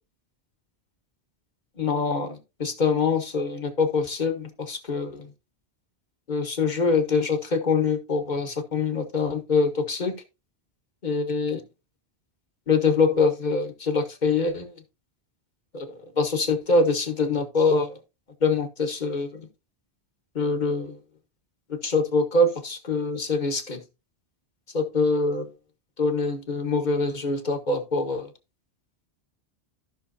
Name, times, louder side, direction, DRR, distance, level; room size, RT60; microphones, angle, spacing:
voice 1, 1.8-5.3 6.3-10.2 11.0-11.6 12.7-14.8 15.7-18.0 18.4-19.5 20.3-21.0 21.7-23.8 24.7-25.5 26.0-28.3, left 4 dB, 45° left, 1.4 m, -24 dB
14.5 x 5.9 x 2.7 m
omnidirectional pair, 1.1 m